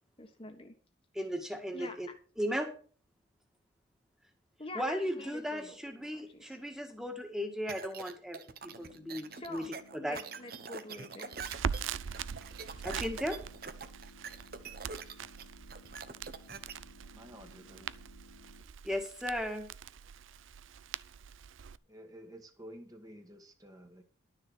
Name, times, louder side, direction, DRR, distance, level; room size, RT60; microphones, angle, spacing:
voice 1, 0.2-0.8 1.7-2.0 4.6-5.7 6.1-6.6 9.3-9.7 10.0-11.3, left 2 dB, 30° left, 4 dB, 1.3 m, -46 dB
voice 2, 1.1-2.1 2.4-2.7 4.7-9.6 9.9-10.2 12.8-13.4 18.8-19.7, equal, 5° right, 4 dB, 1.7 m, -36 dB
sound 1, 7.7-16.7, right 5 dB, 50° right, 1.0 m, -44 dB
sound 2, 8.6-18.6, left 2 dB, 65° left, 2.4 m, -59 dB
Crackle, 11.3-21.8, right 7 dB, 85° right, 0.5 m, -42 dB
voice 3, 17.0-17.9 21.9-24.0, equal, 20° right, 4 dB, 1.4 m, -51 dB
12.0 x 6.7 x 6.2 m, 0.41 s
head